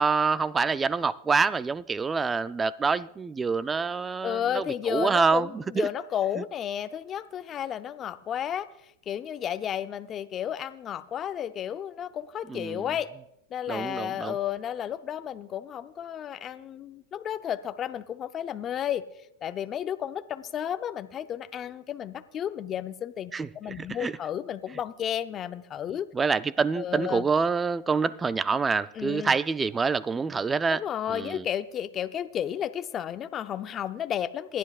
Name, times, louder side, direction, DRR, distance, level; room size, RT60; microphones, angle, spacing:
voice 1, 0.0-5.9 6.4-6.5 12.5-12.9 13.7-14.3 23.3-23.5 23.8-24.1 26.1-30.8 31.1-31.4, right 5 dB, 15° right, 0.4 m, -26 dB
voice 2, 4.2-8.7 9.1-13.1 13.5-19.0 19.4-26.1 26.7-27.3 28.9-29.4 30.7-34.6, left 10 dB, 30° left, 0.6 m, -32 dB
27.5 x 10.0 x 2.4 m
hypercardioid pair, 115°, 0 cm